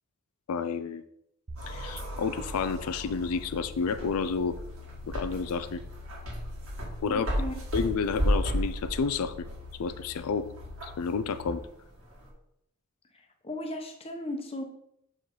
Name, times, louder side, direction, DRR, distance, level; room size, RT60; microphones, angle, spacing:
voice 1, 0.5-1.0 1.7-4.6 5.1-5.8 7.0-7.3 7.7-9.3 9.8-10.5 10.8-11.6, left 5 dB, 90° left, 12 dB, 0.4 m, -30 dB
sound 1, 1.5-11.5, left 7 dB, 40° right, 0.8 m, -48 dB
sound 2, 1.6-12.3, equal, 70° right, 1.8 m, -35 dB
voice 2, 7.1-7.5 13.4-14.6, left 1 dB, 25° left, 4 dB, 0.9 m, -36 dB
6.4 x 5.0 x 3.9 m, 0.77 s
head